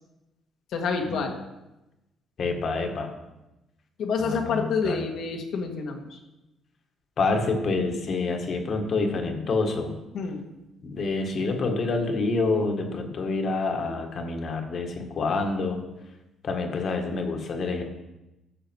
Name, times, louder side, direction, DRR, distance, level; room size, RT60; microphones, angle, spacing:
voice 1, 0.7-1.4 4.0-6.2 10.1-10.5, left 5 dB, 70° left, 3 dB, 1.6 m, -28 dB
voice 2, 2.4-3.1 4.2-5.0 7.2-10.0 10.8-15.8 16.4-17.8, left 3 dB, 50° left, 4 dB, 1.7 m, -27 dB
12.5 x 6.7 x 4.6 m, 0.97 s
cardioid pair, 120°, 0 cm